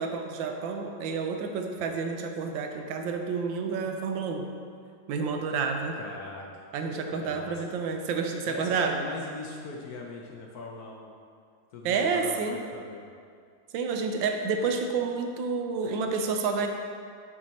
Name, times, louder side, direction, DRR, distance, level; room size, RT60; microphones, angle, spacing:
voice 1, 0.0-4.5 5.1-6.0 6.7-9.0 11.8-12.6 13.7-16.7, right 5 dB, 85° right, 4 dB, 1.3 m, -29 dB
voice 2, 5.9-6.6 7.1-7.8 8.5-11.1 11.7-13.0, left 3 dB, 65° left, 0 dB, 1.0 m, -40 dB
7.4 x 4.6 x 4.1 m, 2.2 s
omnidirectional pair, 2.0 m